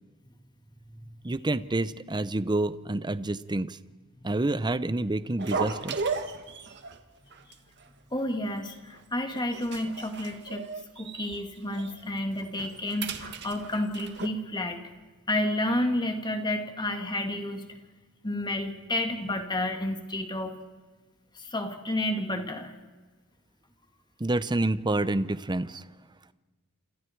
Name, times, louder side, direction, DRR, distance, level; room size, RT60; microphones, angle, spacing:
voice 1, 1.2-3.8 4.2-6.0 24.2-25.8, right 2 dB, 20° right, 15 dB, 0.7 m, -28 dB
sound 1, 5.4-7.0 7.3-7.5 7.8-7.9 8.5-9.0 9.3-11.4 11.7-11.9 12.3-14.3, right 4 dB, 50° right, 1.7 m, -35 dB
voice 2, 8.1-10.6 11.0-14.8 15.3-17.6 18.2-20.5 21.3-22.7, left 1 dB, 20° left, 4 dB, 2.5 m, -30 dB
28.0 x 27.0 x 4.7 m, 1.4 s
head